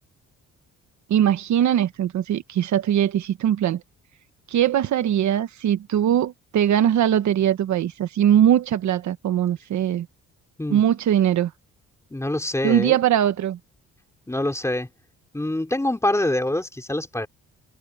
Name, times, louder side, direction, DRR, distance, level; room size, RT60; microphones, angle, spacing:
voice 1, 1.1-3.8 4.5-10.1 10.7-11.5 12.6-13.6, right 10 dB, 70° right, 1.3 m, -21 dB
voice 2, 12.1-13.0 14.3-14.9 15.3-17.3, left 1 dB, 10° left, 4.1 m, -25 dB
cardioid pair, 90°, 30 cm